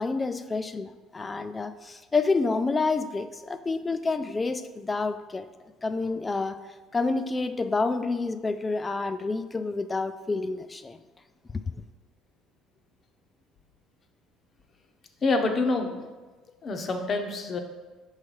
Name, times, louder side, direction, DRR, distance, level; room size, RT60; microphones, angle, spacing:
voice 1, 0.0-5.5 5.8-6.6 6.9-11.0, left 3 dB, 25° left, 10 dB, 0.4 m, -28 dB
voice 2, 15.2-16.0 16.6-17.6, left 3 dB, 40° left, 4 dB, 0.8 m, -26 dB
5.4 x 3.2 x 5.4 m, 1.3 s
supercardioid pair, 75°, 0 cm